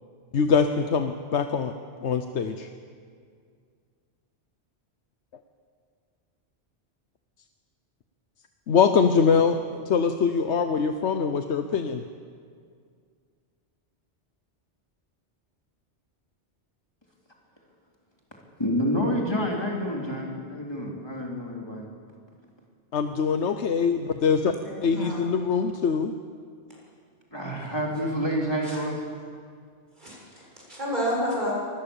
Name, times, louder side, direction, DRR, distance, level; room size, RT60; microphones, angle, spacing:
voice 1, 0.3-1.7 2.0-2.7 8.7-12.0 22.9-24.5 24.8-26.1, left 6 dB, 75° left, 7 dB, 1.2 m, -23 dB
voice 2, 18.6-21.9 27.3-29.0, equal, 20° left, -2 dB, 3.5 m, -28 dB
voice 3, 24.6-25.3 28.6-28.8 30.0-30.4 30.7-31.5, equal, 40° right, -4 dB, 7.3 m, -30 dB
24.5 x 20.0 x 7.2 m, 2.2 s
omnidirectional pair, 1.2 m